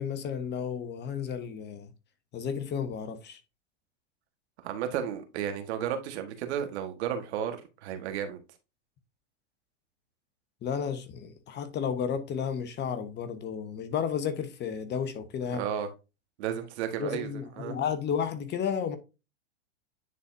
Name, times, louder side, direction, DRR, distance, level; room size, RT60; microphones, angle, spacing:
voice 1, 0.0-1.9 2.3-3.4 10.6-15.6 17.0-19.0, left 7 dB, 30° left, 1.0 m, -32 dB
voice 2, 4.6-8.4 15.5-15.9 16.4-17.3 17.6-17.7, right 9 dB, 65° right, 1.5 m, -33 dB
9.7 x 4.1 x 2.6 m
hypercardioid pair, 105°, 36 cm